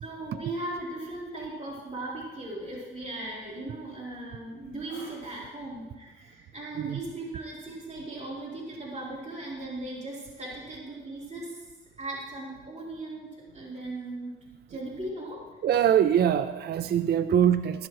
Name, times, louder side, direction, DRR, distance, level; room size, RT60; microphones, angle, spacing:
voice 1, 0.0-11.7 12.0-13.3 13.5-14.3 14.7-15.4 17.1-17.3, right 2 dB, 35° right, -4 dB, 3.5 m, -38 dB
voice 2, 15.6-17.9, right 9 dB, 55° right, 12 dB, 0.5 m, -23 dB
12.5 x 12.0 x 3.1 m, 1.2 s
cardioid pair, 90°, 20 cm